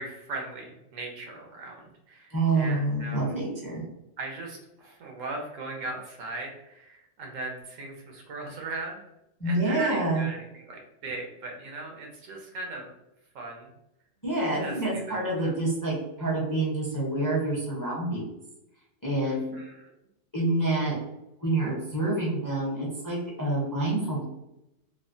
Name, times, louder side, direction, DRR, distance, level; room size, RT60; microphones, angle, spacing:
voice 1, 0.0-3.4 4.2-9.0 9.4-12.9 13.3-13.7 14.6-15.5 19.2-19.9, right 2 dB, 85° right, 1 dB, 1.1 m, -38 dB
voice 2, 2.3-3.8 9.4-10.3 14.2-18.3 19.0-19.6 20.3-20.9 21.4-24.2, right 2 dB, 20° left, -5 dB, 0.6 m, -27 dB
3.2 x 2.1 x 2.5 m, 0.88 s
omnidirectional pair, 1.3 m